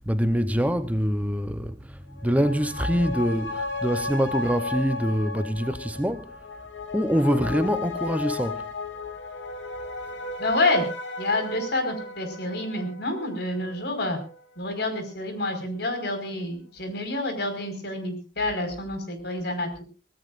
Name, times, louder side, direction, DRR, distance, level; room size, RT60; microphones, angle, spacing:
voice 1, 0.0-6.3 6.9-8.6, equal, 10° right, 0.8 m, -25 dB
sound 1, 2.1-15.0 15.3-15.4, left 3 dB, 80° left, 2.8 m, -35 dB
voice 2, 10.4-10.8 11.2-14.2 14.6-19.8, left 2 dB, 60° left, 4.8 m, -28 dB
24.5 x 17.5 x 2.5 m
head